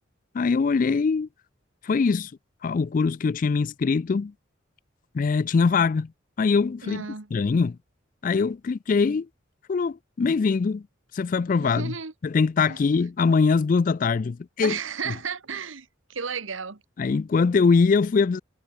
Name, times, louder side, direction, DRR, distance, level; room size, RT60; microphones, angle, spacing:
voice 1, 0.3-1.3 1.8-2.3 2.6-4.3 5.1-6.1 6.4-7.1 7.3-7.8 8.2-9.3 9.7-10.8 11.1-11.9 12.2-14.8 17.0-18.4, left 4 dB, 40° left, 0.3 m, -22 dB
voice 2, 6.8-7.3 11.6-12.1 12.7-12.8 14.6-16.8, right 6 dB, 75° right, 1.3 m, -33 dB
head